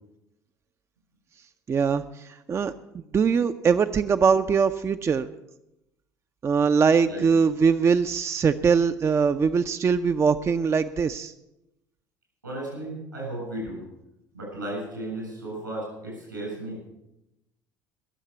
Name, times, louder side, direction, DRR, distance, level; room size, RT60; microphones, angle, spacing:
voice 1, 1.7-2.7 3.1-5.3 6.4-11.3, right 6 dB, 25° right, 9 dB, 0.5 m, -22 dB
voice 2, 12.4-13.8 14.3-16.8, right 1 dB, 85° right, -2 dB, 7.4 m, -34 dB
21.5 x 7.3 x 6.9 m, 0.89 s
figure-of-eight pair, 60°, 10 cm